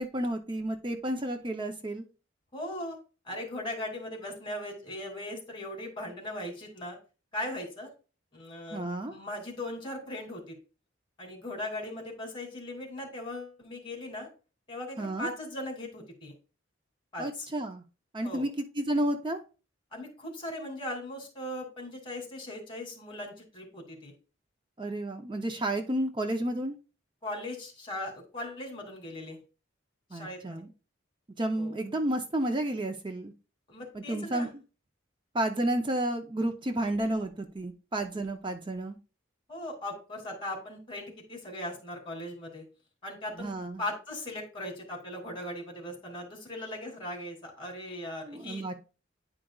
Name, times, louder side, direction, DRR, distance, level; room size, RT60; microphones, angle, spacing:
voice 1, 0.0-2.0 8.7-9.2 15.0-15.3 17.2-17.8 18.1-18.5 18.7-19.4 24.8-26.8 30.1-30.7 31.4-33.3 33.9-34.5 35.3-39.0 43.4-43.8 48.2-48.7, right 1 dB, 25° right, 5 dB, 0.6 m, -31 dB
voice 2, 2.5-3.0 3.2-7.0 7.3-7.9 8.3-10.6 11.2-14.3 14.7-16.3 17.1-17.5 18.2-18.5 19.9-24.1 27.2-29.4 30.1-30.6 31.6-31.8 33.7-34.5 39.5-42.6 43.0-48.7, left 1 dB, 25° left, 1 dB, 2.6 m, -39 dB
9.8 x 4.9 x 2.3 m, 0.33 s
head